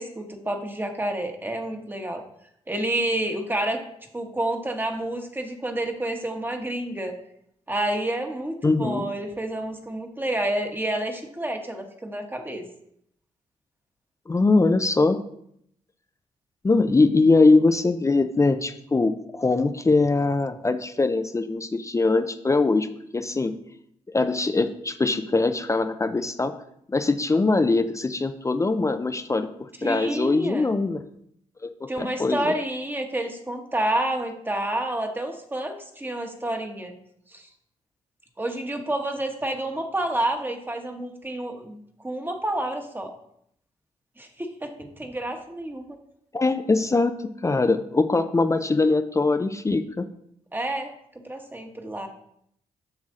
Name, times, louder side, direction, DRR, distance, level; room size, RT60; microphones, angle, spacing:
voice 1, 0.0-2.2 2.7-3.8 4.1-7.1 7.7-12.7 29.8-30.7 31.9-36.9 37.3-37.5 38.4-43.1 44.2-46.0 50.5-50.9 51.2-52.1, right 1 dB, 15° right, 4 dB, 1.3 m, -29 dB
voice 2, 8.6-9.0 14.3-15.2 16.6-22.9 23.1-23.5 24.1-26.5 26.9-31.0 31.8-32.6 46.3-47.2 47.4-50.1, left 3 dB, 20° left, 9 dB, 0.6 m, -22 dB
7.4 x 6.1 x 3.8 m, 0.72 s
cardioid pair, 70°, 14 cm